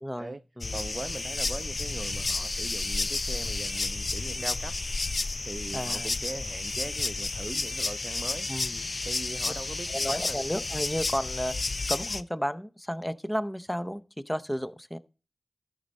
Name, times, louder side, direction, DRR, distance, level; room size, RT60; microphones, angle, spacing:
voice 1, 0.0-0.7 4.4-4.5 5.7-6.1 8.5-8.8 9.9-11.5 11.9-15.0, equal, 10° left, 0.7 m, -33 dB
sound 1, 0.6-12.2, left 3 dB, 55° left, 0.4 m, -31 dB
voice 2, 0.7-4.8 5.4-8.5 9.0-10.4, right 2 dB, 45° right, 0.4 m, -40 dB
13.0 x 5.3 x 4.1 m
cardioid pair, 45°, 0 cm